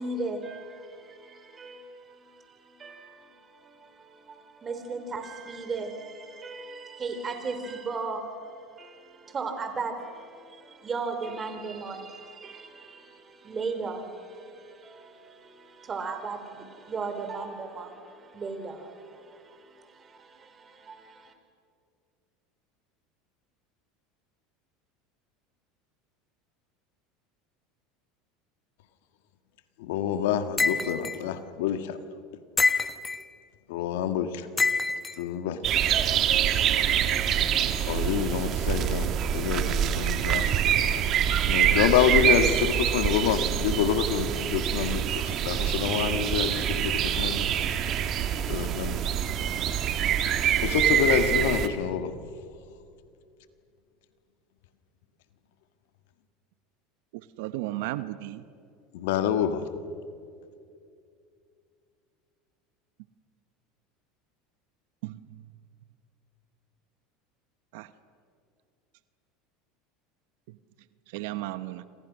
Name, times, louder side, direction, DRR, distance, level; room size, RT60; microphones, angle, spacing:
voice 1, 0.0-21.3, right 4 dB, 30° right, 4.2 m, -37 dB
voice 2, 29.8-32.0 33.7-34.5 35.2-35.7 37.8-40.5 41.5-47.5 48.5-49.0 50.6-52.1 58.9-59.6, left 8 dB, 75° left, 1.7 m, -27 dB
sound 1, 30.6-31.2 32.6-33.2 34.6-35.2, left 3 dB, 15° left, 1.2 m, -25 dB
sound 2, 35.6-51.7, right 9 dB, 45° right, 1.9 m, -25 dB
voice 3, 57.4-58.4 65.0-65.2 67.7-67.9 71.1-71.8, right 16 dB, 75° right, 0.9 m, -34 dB
27.5 x 26.0 x 6.4 m
supercardioid pair, 100°, 0 cm